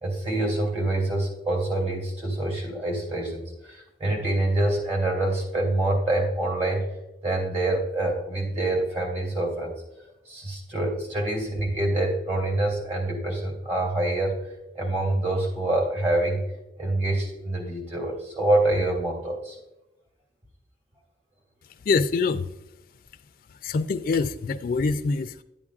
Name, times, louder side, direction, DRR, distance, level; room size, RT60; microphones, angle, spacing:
voice 1, 0.0-6.8 7.2-9.8 10.3-14.4 14.7-16.4 16.8-19.6, right 2 dB, 40° right, 0 dB, 2.4 m, -26 dB
voice 2, 21.8-22.5 23.5-25.4, left 4 dB, 50° left, 9 dB, 0.3 m, -25 dB
11.5 x 8.7 x 2.4 m, 0.92 s
head